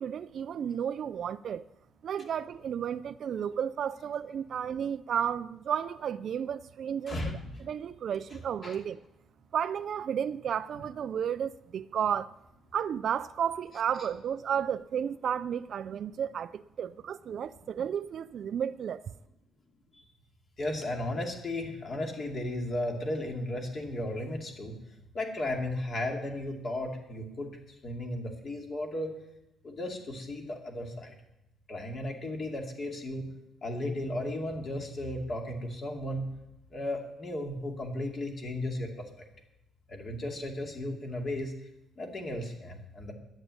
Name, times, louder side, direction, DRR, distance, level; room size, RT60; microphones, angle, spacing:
voice 1, 0.0-1.6 2.0-7.2 7.7-9.0 9.5-12.3 12.7-19.0, right 8 dB, 55° right, 0.4 m, -32 dB
voice 2, 7.1-7.6 8.3-8.8 20.6-24.7 25.1-27.5 27.8-29.1 29.6-31.1 31.7-33.3 33.6-36.3 36.7-39.1 39.9-41.5 42.0-43.1, left 1 dB, 40° left, 2.5 m, -35 dB
11.0 x 8.1 x 9.4 m
cardioid pair, 130°, 0 cm